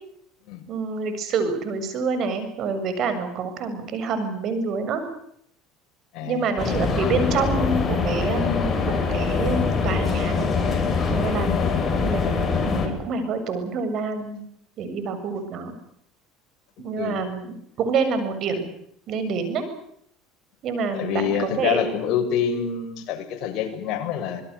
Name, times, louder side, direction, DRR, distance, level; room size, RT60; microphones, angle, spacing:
voice 1, 0.7-5.0 6.2-10.5 11.1-11.6 12.0-12.3 12.6-14.4 14.8-15.7 16.8-18.7 19.1-19.6 20.6-21.9, right 4 dB, 50° right, 10 dB, 7.3 m, -27 dB
voice 2, 6.1-6.5 11.5-11.8 17.0-17.2 20.9-24.4, left 8 dB, 60° left, 3 dB, 7.0 m, -26 dB
sound 1, 6.6-12.9, left 4 dB, 25° left, 6.9 m, -23 dB
26.5 x 21.5 x 8.2 m, 0.70 s
supercardioid pair, 110°, 0 cm